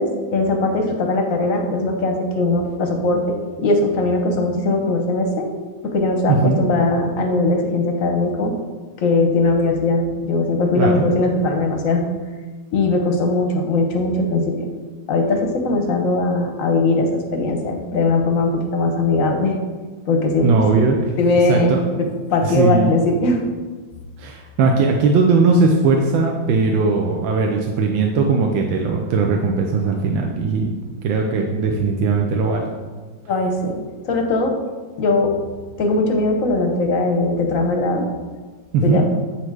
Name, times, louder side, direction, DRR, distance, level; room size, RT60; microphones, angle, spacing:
voice 1, 0.0-5.5 5.8-8.5 9.0-12.1 12.7-14.7 15.1-19.6 20.1-20.7 21.2-23.4 33.3-33.8 34.0-34.6 35.0-35.4 35.8-38.1 38.8-39.0, left 2 dB, 55° left, 2 dB, 0.9 m, -20 dB
voice 2, 6.3-6.6 10.8-11.1 20.4-21.1 21.5-21.8 22.4-22.9 24.2-30.7 31.0-32.7 38.7-39.0, right 4 dB, 80° right, 1 dB, 1.4 m, -18 dB
8.0 x 4.3 x 4.7 m, 1.4 s
omnidirectional pair, 2.2 m